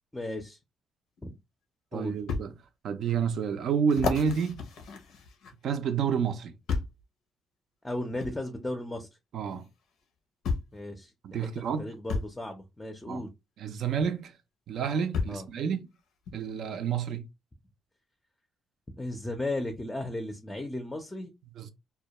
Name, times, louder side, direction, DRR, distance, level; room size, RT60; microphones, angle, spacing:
voice 1, 0.1-0.6 1.2-1.3 1.9-2.2 7.8-9.1 10.7-11.1 11.8-13.3 15.3-15.5 19.0-21.3, left 1 dB, 15° left, 0.4 m, -35 dB
sound 1, 1.2-1.3 2.3-2.5 3.1-3.2 3.9-5.8 6.7-7.0 8.2-8.4 9.6-9.7 10.4-10.8 12.1-12.3 14.0-14.1 15.1-15.5 16.3-16.4, left 4 dB, 80° left, 0.5 m, -32 dB
voice 2, 1.9-2.5 2.8-4.7 5.6-6.5 9.3-9.6 11.2-11.9 13.1-13.2 13.6-14.4 14.7-15.9 16.3-17.2 21.6-21.7, right 7 dB, 70° right, 0.4 m, -29 dB
2.2 x 2.1 x 2.8 m
cardioid pair, 90°, 0 cm